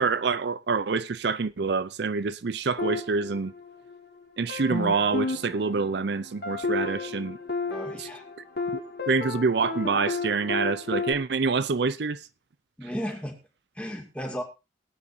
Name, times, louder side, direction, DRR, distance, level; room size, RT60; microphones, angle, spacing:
voice 1, 0.0-3.5 4.4-7.4 8.0-8.1 8.7-12.3, right 4 dB, 60° right, 0.5 m, -26 dB
sound 1, 2.8-4.0 4.5-11.1, left 3 dB, 55° left, 2.3 m, -32 dB
voice 2, 7.7-8.2 12.8-13.4 13.7-14.4, equal, 5° left, 2.4 m, -34 dB
21.0 x 9.0 x 2.7 m
head